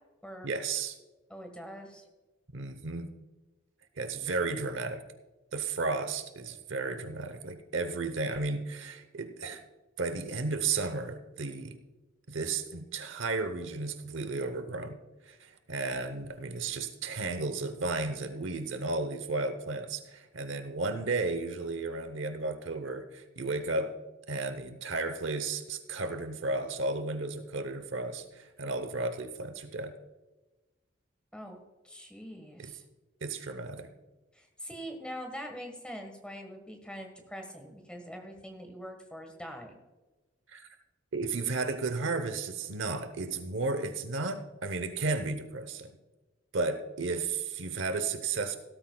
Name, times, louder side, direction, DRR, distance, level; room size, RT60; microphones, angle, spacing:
voice 1, 0.4-1.0 2.5-3.1 4.0-5.0 5.5-9.6 10.0-11.8 12.3-15.0 15.3-24.0 24.3-30.0 32.6-32.7 33.2-33.9 40.5-40.7 41.1-45.9 46.5-48.6, right 3 dB, 75° right, 9 dB, 0.9 m, -33 dB
voice 2, 1.3-2.0 31.3-32.8 34.3-39.8, equal, 5° left, 4 dB, 1.5 m, -43 dB
17.0 x 13.0 x 2.3 m, 1.2 s
head